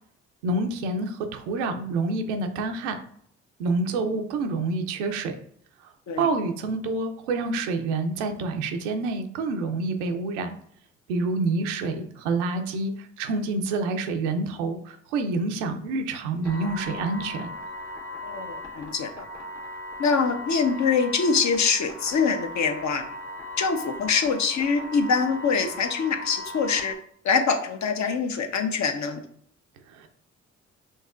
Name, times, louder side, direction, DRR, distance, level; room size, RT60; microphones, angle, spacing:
voice 1, 0.4-3.0 3.6-5.4 6.2-10.5 11.1-17.5 29.9-30.1, right 3 dB, 90° right, 6 dB, 0.5 m, -27 dB
sound 1, 16.4-26.9, left 1 dB, 70° left, 1.5 m, -38 dB
voice 2, 18.2-19.3 20.0-23.0 23.6-27.0 27.2-29.2, left 5 dB, 55° left, 7 dB, 0.8 m, -24 dB
5.4 x 2.8 x 2.4 m, 0.64 s
hypercardioid pair, 45°, 34 cm